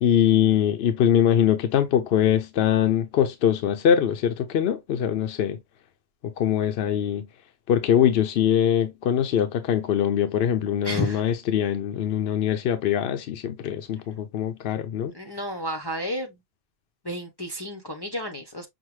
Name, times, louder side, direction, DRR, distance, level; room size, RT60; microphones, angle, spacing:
voice 1, 0.0-5.6 6.2-7.3 7.7-15.1, left 9 dB, 75° left, 0.8 m, -22 dB
voice 2, 10.8-11.3 15.1-16.3 17.0-18.7, equal, 25° left, 0.6 m, -31 dB
6.0 x 2.1 x 3.1 m
omnidirectional pair, 1.1 m